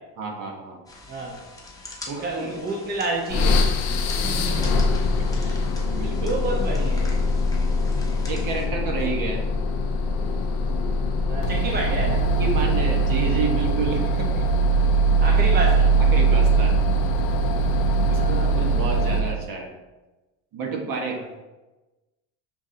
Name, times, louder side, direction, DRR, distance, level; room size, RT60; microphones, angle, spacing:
voice 1, 0.2-0.8 2.1-2.6 4.1-4.7 5.3-6.3 8.3-9.4 12.2-14.5 16.1-16.8 18.1-19.7 20.5-21.2, right 4 dB, 50° right, 1 dB, 1.1 m, -30 dB
sound 1, 0.9-8.7, left 2 dB, 10° left, 0.9 m, -43 dB
voice 2, 1.1-1.4 2.1-3.7 6.2-7.1 11.3-12.3 14.3-14.9 15.2-16.0 18.0-18.8 21.0-21.4, right 2 dB, 25° right, -1 dB, 0.8 m, -30 dB
sound 2, 3.3-19.4, right 1 dB, 70° left, 0.7 m, -22 dB
7.1 x 2.6 x 2.7 m, 1.1 s
supercardioid pair, 95°, 43 cm